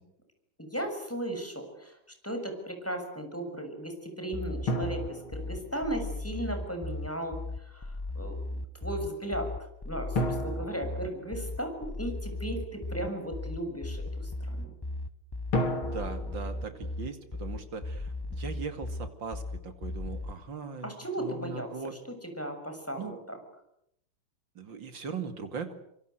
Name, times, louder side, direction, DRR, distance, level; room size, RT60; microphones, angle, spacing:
voice 1, 0.6-2.0 2.2-8.4 8.8-9.5 9.8-14.7 20.8-21.7 22.2-23.4, right 1 dB, 5° left, 4 dB, 6.6 m, -36 dB
sound 1, 4.3-20.3, left 2 dB, 40° left, 0.3 m, -37 dB
sound 2, 4.7-6.3 10.1-12.0 15.5-17.8, left 1 dB, 85° left, 4.0 m, -34 dB
voice 2, 15.8-21.9 23.0-23.2 24.5-25.7, right 5 dB, 65° right, 8 dB, 3.2 m, -39 dB
26.0 x 24.0 x 8.1 m, 0.77 s
omnidirectional pair, 2.3 m